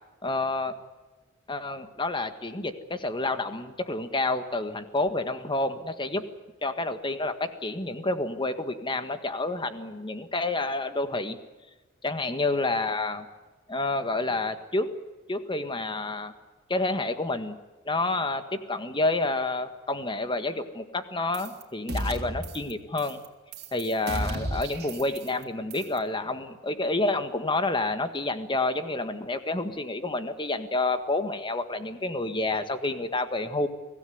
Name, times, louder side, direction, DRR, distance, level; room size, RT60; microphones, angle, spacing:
voice 1, 0.2-0.7 1.5-6.2 6.6-11.4 12.0-13.3 13.7-14.9 15.3-16.3 16.7-17.6 17.9-23.2 23.7-33.7, left 2 dB, 20° left, 9 dB, 1.7 m, -29 dB
sound 1, 21.3-21.6 21.9-22.7 23.0-23.3 23.5-25.4 25.7-26.0, right 1 dB, 50° right, 3.4 m, -34 dB
24.5 x 16.5 x 9.6 m, 1.2 s
head